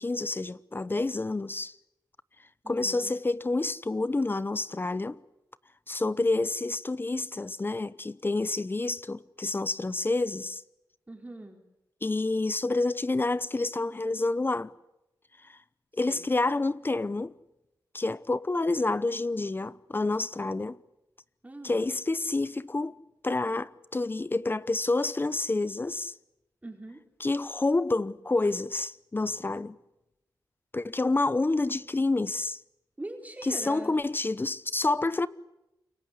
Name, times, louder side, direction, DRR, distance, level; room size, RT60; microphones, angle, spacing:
voice 1, 0.0-1.7 2.7-5.2 5.9-10.6 12.0-14.7 15.4-15.6 15.9-17.3 17.9-20.8 21.6-23.0 23.2-26.1 27.2-29.8 30.7-32.6 33.4-35.3, left 2 dB, 30° left, 0.9 m, -28 dB
voice 2, 2.6-3.1 11.1-11.6 15.9-16.3 21.4-21.9 26.6-27.0 33.0-34.0, right 1 dB, 20° right, 4.1 m, -42 dB
28.0 x 24.0 x 8.3 m
cardioid pair, 70°, 7 cm